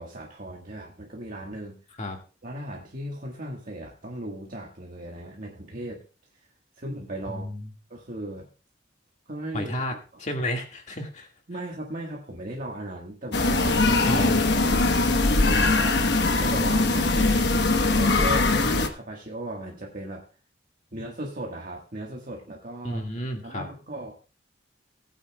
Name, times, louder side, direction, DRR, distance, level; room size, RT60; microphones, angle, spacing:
voice 1, 0.0-1.8 2.4-6.0 6.8-7.4 7.9-8.5 9.3-10.2 11.5-14.3 14.7-14.9 15.4-16.0 16.4-17.5 17.8-20.2 20.9-23.0 23.4-24.1, right 1 dB, 45° right, -1 dB, 1.5 m, -37 dB
voice 2, 7.3-7.7 9.5-9.9 10.2-11.3 14.0-14.8 22.8-23.7, left 1 dB, 40° left, 3 dB, 1.9 m, -32 dB
sound 1, 13.3-18.9, left 2 dB, 60° left, 1.1 m, -21 dB
19.0 x 8.9 x 2.3 m, 0.34 s
head